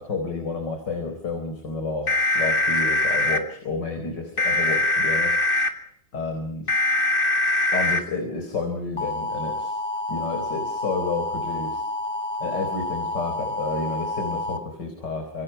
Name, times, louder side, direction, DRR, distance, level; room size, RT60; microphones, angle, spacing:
voice 1, 0.0-5.4 6.1-6.7 7.7-9.8 10.1-11.8 12.4-15.4, left 3 dB, 65° left, 4 dB, 4.9 m, -30 dB
sound 1, 2.1-3.4 4.4-5.7 6.7-8.0 9.0-14.6, left 2 dB, 30° left, 2.3 m, -24 dB
27.0 x 25.0 x 5.6 m, 0.66 s
omnidirectional pair, 2.0 m